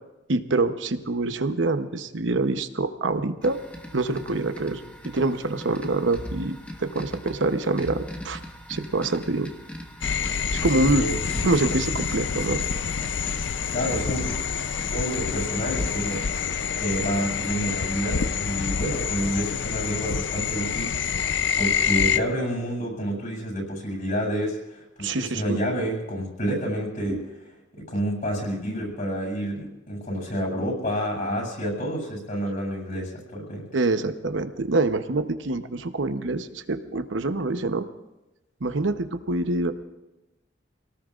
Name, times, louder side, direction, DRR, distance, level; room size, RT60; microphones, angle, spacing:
voice 1, 0.3-3.6 3.9-8.4 8.7-9.5 10.5-11.0 11.4-12.6 25.0-25.6 33.7-37.9 38.6-39.7, right 2 dB, 80° right, 9 dB, 0.9 m, -25 dB
sound 1, 3.4-16.3, equal, 10° left, 1.5 m, -41 dB
sound 2, 10.0-22.2, left 7 dB, 75° left, 0.6 m, -27 dB
voice 2, 10.8-11.4 13.7-14.3 14.9-16.5 16.7-21.2 21.6-27.5 27.7-33.7, equal, 45° left, -2 dB, 7.1 m, -29 dB
27.5 x 18.5 x 2.5 m, 0.98 s
head